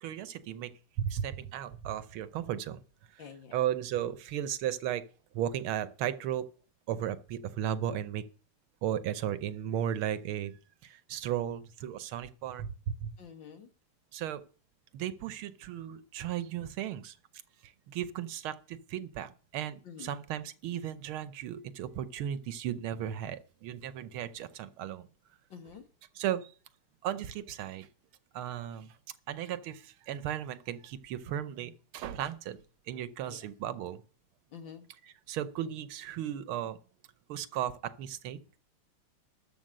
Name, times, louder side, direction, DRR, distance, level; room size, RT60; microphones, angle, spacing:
voice 1, 0.0-2.8 3.5-5.0 5.3-6.5 6.9-8.2 8.8-10.6 10.8-13.1 14.1-14.4 14.9-17.1 17.6-25.1 26.2-26.5 27.0-27.9 28.3-28.9 29.3-32.6 32.9-34.0 35.3-36.8 37.3-38.6, right 10 dB, 80° right, 1.6 m, -35 dB
voice 2, 3.2-3.6 13.2-13.7 19.8-20.2 25.5-25.8 33.3-33.5 34.5-34.8, left 7 dB, 60° left, 2.1 m, -48 dB
13.0 x 5.3 x 7.6 m
omnidirectional pair, 2.4 m